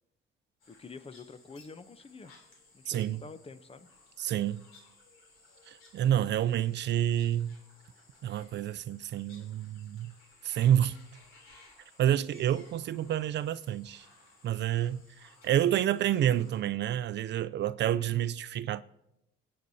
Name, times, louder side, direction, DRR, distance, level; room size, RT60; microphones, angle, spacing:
sound 1, 0.6-16.6, left 2 dB, 85° left, 3.3 m, -59 dB
voice 1, 0.7-2.4 2.7-3.9, left 4 dB, 30° left, 0.7 m, -47 dB
voice 2, 2.9-3.2 4.2-4.6 5.7-7.6 8.2-10.1 10.4-11.0 12.0-14.1 14.4-18.8, right 11 dB, 60° right, 0.4 m, -29 dB
21.5 x 8.7 x 2.8 m
cardioid pair, 90°, 20 cm